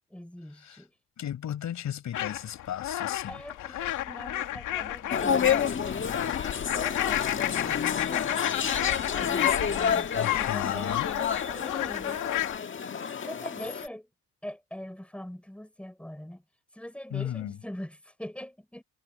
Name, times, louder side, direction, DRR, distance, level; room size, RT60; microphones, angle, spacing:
voice 1, 0.1-0.9 3.3-12.5 13.2-14.1 14.4-16.4 16.7-18.8, equal, 5° left, 6.4 m, -43 dB
voice 2, 1.2-3.4 3.7-3.8 10.1-11.1 17.1-17.6, left 10 dB, 70° left, 5.9 m, -35 dB
sound 1, 2.1-12.6, left 13 dB, 85° left, 2.4 m, -31 dB
sound 2, 5.1-13.9, left 7 dB, 40° left, 1.7 m, -30 dB
cardioid pair, 90°, 30 cm